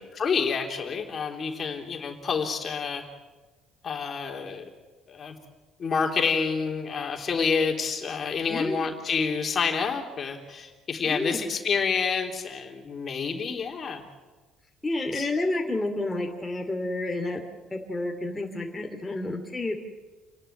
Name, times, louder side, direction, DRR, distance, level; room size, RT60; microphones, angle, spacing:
voice 1, 0.1-3.0 3.8-4.6 5.1-5.4 5.8-14.0 15.1-15.3, left 5 dB, 40° left, 3 dB, 3.5 m, -28 dB
voice 2, 8.5-8.9 11.0-11.4 14.8-17.4 17.7-19.8, left 2 dB, 10° left, 2 dB, 2.6 m, -30 dB
29.0 x 11.5 x 10.0 m, 1.3 s
cardioid pair, 110°, 0 cm